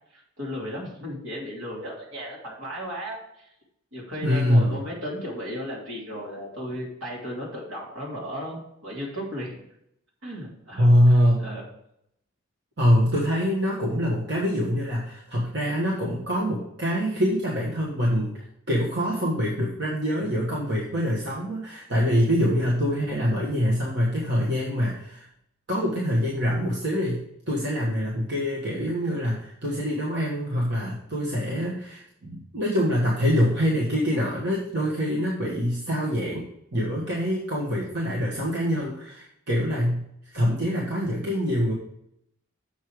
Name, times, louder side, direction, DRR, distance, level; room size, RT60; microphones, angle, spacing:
voice 1, 0.1-3.5 3.9-9.6 10.2-10.9 11.4-11.6, equal, 75° right, -3 dB, 3.1 m, -35 dB
voice 2, 4.2-4.8 10.8-11.5 12.8-25.3 25.7-41.7, equal, 55° right, -4 dB, 1.5 m, -24 dB
7.3 x 5.5 x 4.8 m, 0.77 s
head